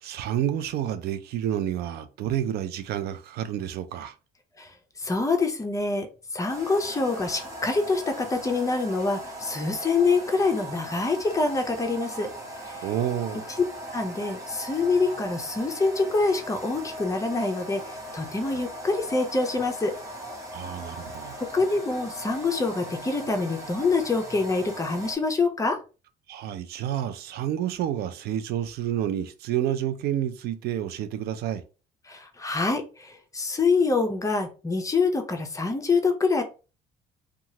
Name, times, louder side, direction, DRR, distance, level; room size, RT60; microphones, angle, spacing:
voice 1, 0.0-4.2 12.8-13.5 18.5-18.6 20.5-21.4 26.3-31.6, right 11 dB, 70° right, 0.4 m, -29 dB
voice 2, 5.0-12.3 12.6-12.9 13.9-20.0 21.5-25.8 32.1-36.4, left 3 dB, 20° left, 0.6 m, -26 dB
sound 1, 6.5-25.2, right 1 dB, 20° right, 1.0 m, -39 dB
2.9 x 2.4 x 2.8 m
cardioid pair, 110°, 17 cm